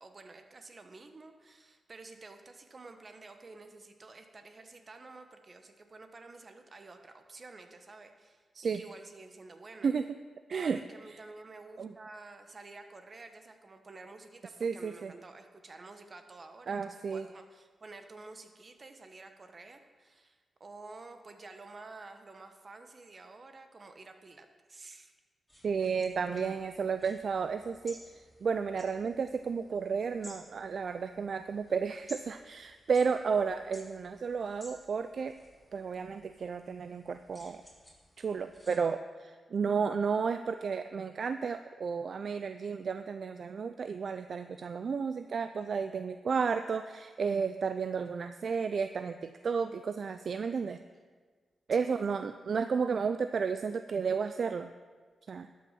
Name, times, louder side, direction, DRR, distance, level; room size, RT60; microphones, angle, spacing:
voice 1, 0.0-8.4 8.7-9.9 10.5-25.1 26.5-26.6 36.4-36.5 51.7-52.1, right 3 dB, 45° right, 7 dB, 1.1 m, -51 dB
voice 2, 14.6-15.1 16.7-17.3 25.6-28.0 28.4-35.3 35.7-37.6 38.2-50.8 51.7-54.7 55.3-55.5, right 5 dB, 60° right, 10 dB, 0.4 m, -32 dB
sound 1, 25.5-38.8, left 1 dB, 10° left, 3.6 m, -56 dB
12.0 x 6.3 x 5.7 m, 1.5 s
cardioid pair, 60°, 0 cm